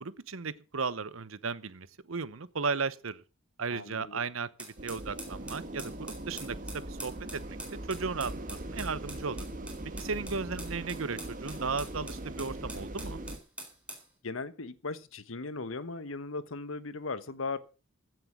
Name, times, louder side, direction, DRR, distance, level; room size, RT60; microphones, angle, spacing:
voice 1, 0.0-3.2 3.6-5.9 6.3-7.6 7.9-9.5 10.0-13.2, right 4 dB, 85° right, 0.9 m, -35 dB
voice 2, 3.7-4.2 14.2-17.6, left 3 dB, 80° left, 1.2 m, -38 dB
sound 1, 4.6-14.1, right 2 dB, 5° right, 4.0 m, -45 dB
sound 2, 4.8-13.4, right 1 dB, 40° right, 1.6 m, -40 dB
15.5 x 7.8 x 6.2 m
head